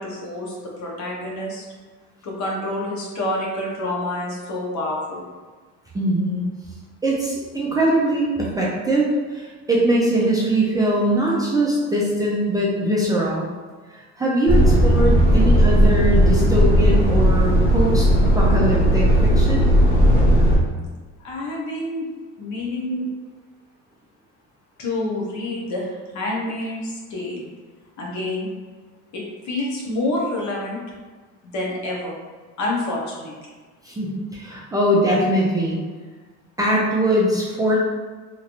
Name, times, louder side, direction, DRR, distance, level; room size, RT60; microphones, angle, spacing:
voice 1, 0.0-1.6 2.2-5.2 21.2-22.1 22.4-23.1 24.8-27.5 28.0-28.5 29.1-30.8 31.4-32.1 32.6-33.3, left 1 dB, 60° left, -3 dB, 1.0 m, -28 dB
voice 2, 5.9-6.4 7.0-13.5 13.9-19.7 33.8-35.8 36.6-37.8, right 1 dB, 10° right, -5 dB, 0.4 m, -21 dB
Truck, 14.5-20.6, equal, 30° left, 1.1 m, -16 dB
3.0 x 2.5 x 2.9 m, 1.4 s
cardioid pair, 140°, 32 cm